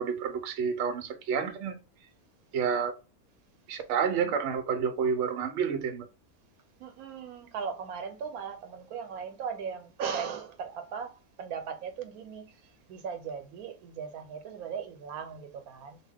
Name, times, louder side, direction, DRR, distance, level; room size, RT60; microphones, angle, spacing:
voice 1, 0.0-1.8 2.5-2.9 3.7-6.1, right 6 dB, 65° right, 0.8 m, -29 dB
voice 2, 6.8-12.6 12.9-16.0, right 6 dB, 85° right, 1.1 m, -38 dB
2.8 x 2.2 x 3.4 m
omnidirectional pair, 1.5 m